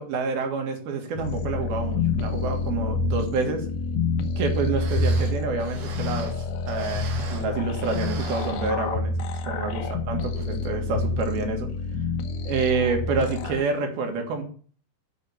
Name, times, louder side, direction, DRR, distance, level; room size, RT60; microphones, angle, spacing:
voice 1, 0.0-3.7 4.4-6.4 6.7-9.2 9.5-11.7 12.5-14.4, right 4 dB, 90° right, 4 dB, 3.8 m, -28 dB
sound 1, 1.2-13.6, left 3 dB, 80° left, 2.9 m, -28 dB
sound 2, 4.4-4.5 4.7-7.6 7.8-9.2 9.6-9.7 10.3-10.6 11.0-11.1, right 6 dB, 65° right, 3.1 m, -41 dB
8.6 x 6.2 x 7.3 m, 0.43 s
omnidirectional pair, 4.3 m